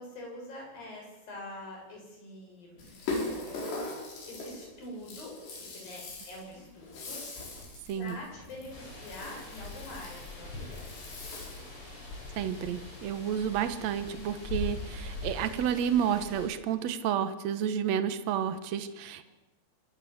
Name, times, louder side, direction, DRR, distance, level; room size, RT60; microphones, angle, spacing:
voice 1, 0.0-2.9 4.2-7.2 8.0-10.9, left 1 dB, 55° left, 0 dB, 9.4 m, -45 dB
Rattle (instrument), 2.8-11.8, left 2 dB, 90° left, 7.8 m, -40 dB
sound 1, 8.7-16.5, left 2 dB, 30° left, 7.6 m, -42 dB
voice 2, 12.4-19.3, right 8 dB, 75° right, 11 dB, 1.6 m, -30 dB
25.5 x 18.0 x 8.0 m, 1.1 s
omnidirectional pair, 4.9 m